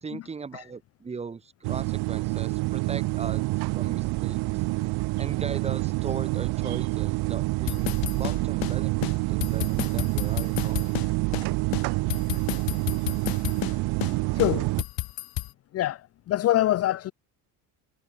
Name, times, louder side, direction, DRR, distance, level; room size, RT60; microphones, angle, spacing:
voice 1, 0.0-4.6 5.2-11.1, right 5 dB, 15° right, 2.5 m, -39 dB
sound 1, 1.6-14.8, right 24 dB, 70° right, 1.5 m, -27 dB
sound 2, 7.7-8.8 9.0-9.1 9.4-11.1 11.3-11.5 11.7-13.8 14.0-14.1 14.4-15.5, left 20 dB, 60° left, 3.7 m, -31 dB
voice 2, 14.3-14.7 15.7-17.1, left 14 dB, 35° left, 0.8 m, -24 dB
cardioid pair, 180°, 40 cm